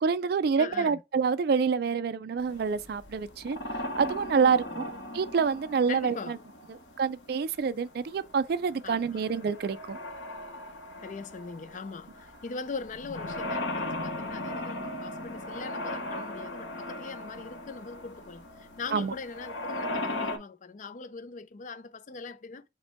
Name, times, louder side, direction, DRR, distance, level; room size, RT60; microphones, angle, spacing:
voice 1, 0.0-3.6 4.0-6.4 6.7-10.0 18.9-19.1, right 5 dB, 55° right, 0.3 m, -27 dB
voice 2, 0.6-1.0 4.5-4.8 5.9-6.3 8.8-9.1 11.0-18.5 18.8-22.6, left 4 dB, 45° left, 0.4 m, -41 dB
sound 1, 2.4-20.4, left 1 dB, 90° left, 1.0 m, -38 dB
5.3 x 2.2 x 4.4 m
head